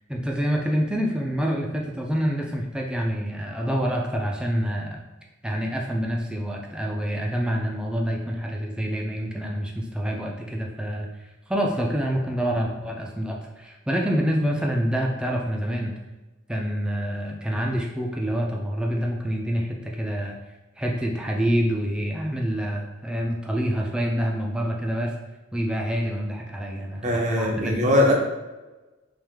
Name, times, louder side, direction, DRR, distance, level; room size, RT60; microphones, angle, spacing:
voice 1, 0.1-5.0 5.4-11.1 11.5-15.9 16.5-20.4 20.8-25.1 25.5-28.0, equal, 5° right, -1 dB, 0.4 m, -27 dB
voice 2, 27.0-28.1, left 1 dB, 35° right, 0 dB, 0.7 m, -21 dB
3.3 x 3.1 x 3.4 m, 1.1 s
head